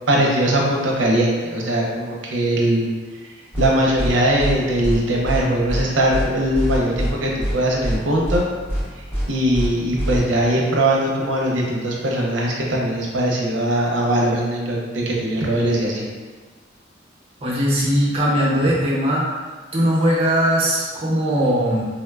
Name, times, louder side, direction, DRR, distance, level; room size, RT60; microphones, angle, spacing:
voice 1, 0.1-2.9 3.6-8.5 9.3-16.1, right 1 dB, 75° right, -2 dB, 0.6 m, -20 dB
sound 1, 3.5-3.7 4.0-4.1 4.4-4.5 4.8-5.0 5.2-5.4 5.7-5.8 6.1-6.2 6.5-7.1 7.4-7.5 7.8-8.0 8.2-8.4 8.7-8.8 9.1-9.2 9.5-9.7 10.0-10.2, equal, 15° left, 0.8 m, -23 dB
voice 2, 17.4-19.2 19.7-21.8, equal, 30° right, -7 dB, 0.7 m, -19 dB
3.6 x 2.1 x 2.3 m, 1.4 s
head